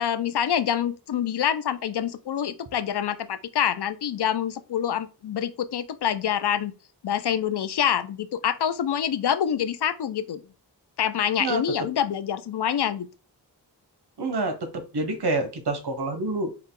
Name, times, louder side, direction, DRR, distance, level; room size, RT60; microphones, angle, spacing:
voice 1, 0.0-6.7 7.0-10.4 11.0-13.1, left 9 dB, 75° left, 0.6 m, -26 dB
voice 2, 14.2-16.5, right 2 dB, 70° right, 1.0 m, -27 dB
4.5 x 2.3 x 3.7 m
wide cardioid pair, 55°, 41 cm